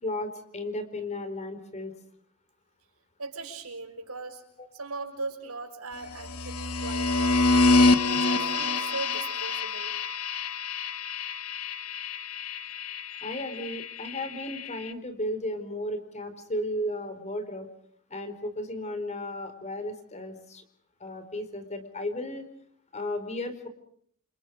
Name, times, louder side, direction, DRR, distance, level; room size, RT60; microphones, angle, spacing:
voice 1, 0.0-2.0 4.6-4.7 13.2-17.7 18.1-20.6 21.0-22.5 22.9-23.7, left 1 dB, 30° left, 10 dB, 4.5 m, -34 dB
voice 2, 3.2-4.4 4.7-7.7 8.1-10.0, right 3 dB, 75° right, 6 dB, 6.1 m, -39 dB
sound 1, 6.1-14.9, left 3 dB, 80° left, 1.9 m, -27 dB
29.5 x 29.5 x 4.9 m, 0.64 s
head